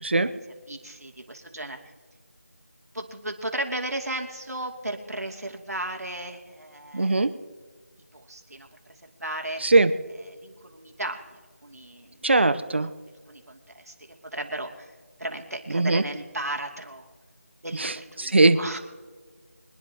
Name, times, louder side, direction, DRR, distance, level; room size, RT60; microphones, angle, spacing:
voice 1, 0.7-1.8 2.9-7.3 8.1-8.7 9.2-9.6 10.3-12.2 13.3-13.9 14.3-14.9 15.2-17.1 17.6-18.8, right 1 dB, 85° right, 2 dB, 2.7 m, -35 dB
voice 2, 6.9-7.3 9.6-9.9 12.2-12.9 15.7-16.0 17.8-17.9 18.2-18.6, right 2 dB, 45° right, 12 dB, 0.8 m, -20 dB
25.0 x 10.5 x 3.0 m, 1.5 s
figure-of-eight pair, 175°, 8 cm